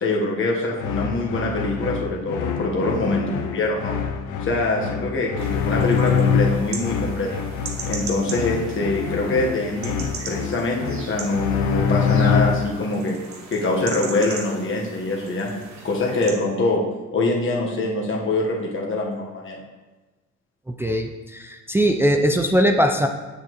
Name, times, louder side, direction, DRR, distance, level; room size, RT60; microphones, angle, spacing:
voice 1, 0.0-4.0 4.4-7.3 7.9-13.1 13.5-15.5 15.8-16.8 17.1-19.6, left 2 dB, 40° left, -1 dB, 1.3 m, -24 dB
sound 1, 0.8-12.8, left 6 dB, 80° left, 0.7 m, -25 dB
sound 2, 5.4-16.3, right 4 dB, 65° right, 1.2 m, -38 dB
voice 2, 20.7-23.1, equal, 10° right, 4 dB, 0.4 m, -20 dB
7.3 x 6.7 x 3.0 m, 1.2 s
cardioid pair, 90°, 30 cm